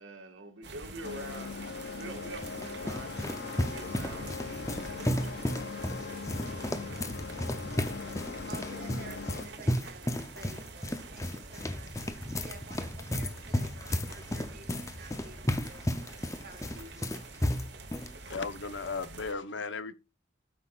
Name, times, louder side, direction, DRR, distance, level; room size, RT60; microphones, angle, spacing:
voice 1, 0.0-1.6 1.9-5.8, right 2 dB, 90° right, 2.0 m, -46 dB
sound 1, 0.6-19.3, right 3 dB, 65° right, 1.3 m, -47 dB
sound 2, 1.0-9.5, left 5 dB, 55° left, 0.5 m, -41 dB
sound 3, 2.0-18.1, left 1 dB, 15° left, 0.7 m, -34 dB
voice 2, 8.5-17.1, right 2 dB, 50° right, 1.5 m, -51 dB
voice 3, 18.2-19.9, left 4 dB, 80° left, 1.0 m, -36 dB
12.5 x 5.7 x 2.5 m
head